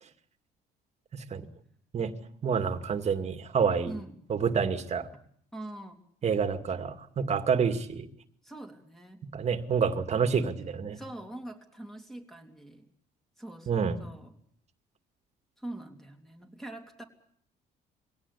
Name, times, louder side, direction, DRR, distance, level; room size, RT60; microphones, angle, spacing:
voice 1, 1.1-1.5 1.9-2.1 2.4-3.9 4.3-5.1 6.2-8.1 9.3-11.0 13.7-14.0, right 6 dB, 40° right, 8 dB, 2.3 m, -28 dB
voice 2, 5.5-6.0 8.4-9.2 10.9-12.8 13.4-14.3 15.6-17.0, right 1 dB, ahead, 4 dB, 3.2 m, -43 dB
23.0 x 17.5 x 8.5 m, 0.64 s
cardioid pair, 110°, 17 cm